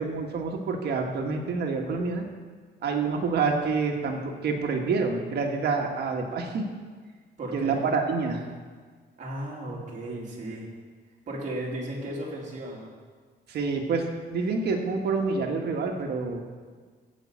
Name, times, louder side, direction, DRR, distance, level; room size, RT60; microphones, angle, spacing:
voice 1, 0.0-2.2 2.8-6.6 7.5-8.4 13.5-16.4, right 4 dB, 65° right, 2 dB, 1.6 m, -27 dB
voice 2, 7.4-7.8 9.2-10.6 11.3-12.9, right 1 dB, 40° right, -4 dB, 2.9 m, -35 dB
16.0 x 5.4 x 7.2 m, 1.5 s
cardioid pair, 175°, 18 cm